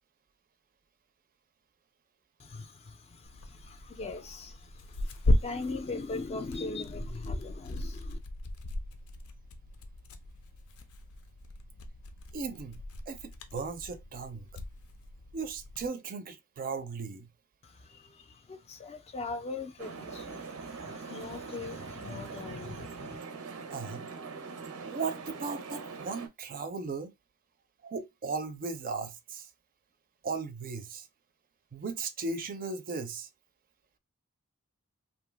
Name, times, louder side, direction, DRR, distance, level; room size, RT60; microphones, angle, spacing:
voice 1, 2.4-8.2 17.6-23.2, left 3 dB, 30° left, 0.3 m, -40 dB
Tearing, 3.2-15.9, left 1 dB, 90° left, 0.5 m, -36 dB
voice 2, 12.3-14.5 15.3-17.3 23.7-24.1 24.8-27.1 27.8-29.5 30.2-31.1 31.7-33.3, right 4 dB, 40° right, 0.4 m, -37 dB
sound 1, 19.8-26.3, right 4 dB, 90° right, 0.6 m, -42 dB
2.7 x 2.1 x 3.3 m
head